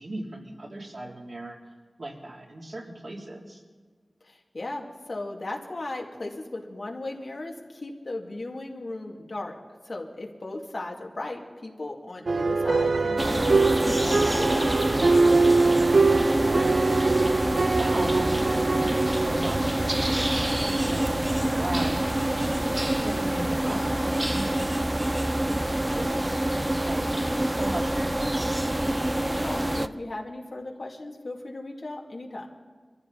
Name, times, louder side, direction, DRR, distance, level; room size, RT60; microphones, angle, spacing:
voice 1, 0.0-1.6 2.0-3.6 15.7-17.3 17.8-26.3 26.8-28.3, right 1 dB, 60° right, -2 dB, 3.3 m, -38 dB
voice 2, 4.2-9.5 9.8-14.8 18.1-18.3 29.2-32.5, left 2 dB, 70° left, 0 dB, 2.4 m, -36 dB
sound 1, 12.3-22.5, right 3 dB, 90° right, 0.9 m, -24 dB
sound 2, 13.2-29.9, right 1 dB, 20° right, 0.6 m, -26 dB
23.5 x 15.0 x 4.1 m, 1.5 s
wide cardioid pair, 55°, 0 cm